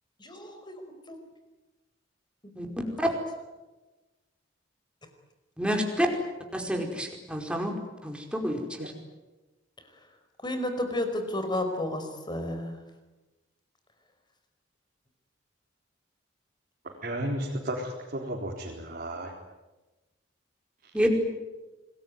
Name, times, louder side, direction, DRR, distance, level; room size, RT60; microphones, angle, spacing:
voice 1, 0.2-0.8 1.1-1.2 2.6-2.8 10.4-12.8, left 1 dB, 25° left, 7 dB, 5.0 m, -32 dB
voice 2, 5.6-6.1 6.5-7.7 8.0-8.6 20.9-21.1, equal, 5° right, 2 dB, 4.9 m, -28 dB
voice 3, 17.0-19.3, right 1 dB, 50° right, -4 dB, 4.3 m, -33 dB
28.0 x 21.5 x 9.5 m, 1.1 s
head